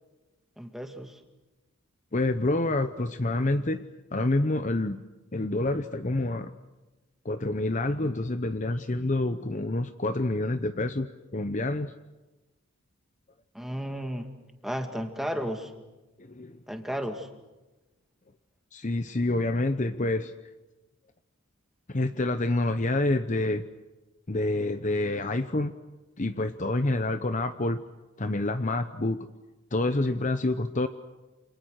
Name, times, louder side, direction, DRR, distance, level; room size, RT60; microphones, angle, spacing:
voice 1, 0.6-1.2 13.5-14.3 14.6-15.7 16.7-17.3, equal, ahead, 4 dB, 2.2 m, -33 dB
voice 2, 2.1-3.8 4.1-5.0 5.3-6.5 7.2-11.1 11.3-11.9 16.2-16.6 18.7-20.3 21.9-23.6 24.3-25.7 26.2-27.8 28.2-29.3 29.7-30.9, left 2 dB, 35° left, 10 dB, 0.8 m, -27 dB
29.5 x 27.5 x 6.5 m, 1.1 s
head